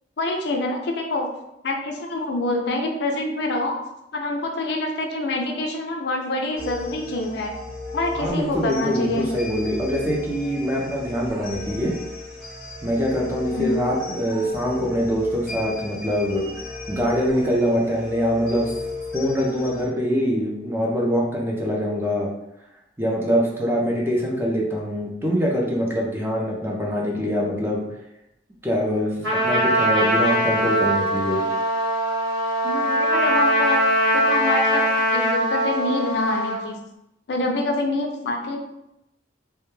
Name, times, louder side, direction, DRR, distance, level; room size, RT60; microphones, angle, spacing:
voice 1, 0.2-1.3 1.6-3.8 4.1-7.5 7.9-9.4 13.5-13.8 32.6-33.8 34.1-34.9 35.1-36.8 37.3-38.6, left 2 dB, 65° left, 2 dB, 0.4 m, -26 dB
sound 1, 6.6-19.9, left 3 dB, 5° left, 0.8 m, -35 dB
voice 2, 8.2-11.9 12.8-16.4 16.9-18.7 19.1-22.3 23.0-27.8 28.6-31.4, equal, 15° right, -2 dB, 0.4 m, -24 dB
Trumpet, 29.2-36.6, equal, 80° right, 1.2 m, -21 dB
2.2 x 2.2 x 3.0 m, 0.86 s
head